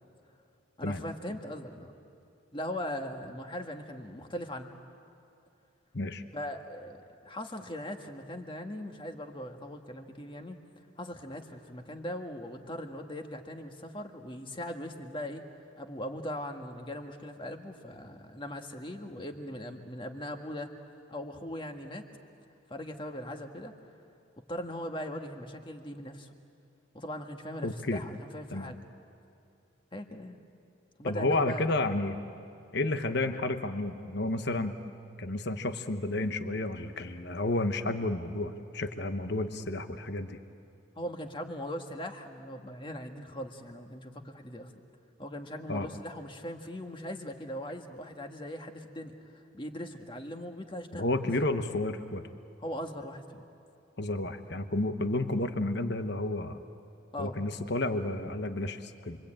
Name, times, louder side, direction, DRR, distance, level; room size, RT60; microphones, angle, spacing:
voice 1, 0.8-1.9 2.5-4.8 6.3-10.6 11.0-15.4 15.8-20.7 21.1-22.1 22.7-23.7 24.5-26.3 26.9-28.8 29.9-30.4 31.0-31.7 41.0-44.7 45.2-51.1 52.6-53.4 57.1-57.4 58.2-58.4, equal, 25° left, 4 dB, 1.7 m, -40 dB
voice 2, 27.6-28.0 28.5-28.7 31.0-32.1 32.7-34.7 35.2-40.4 45.7-45.9 50.9-52.2 54.0-56.6 57.2-59.2, left 2 dB, 55° left, 8 dB, 1.1 m, -31 dB
28.5 x 24.0 x 8.8 m, 2.6 s
head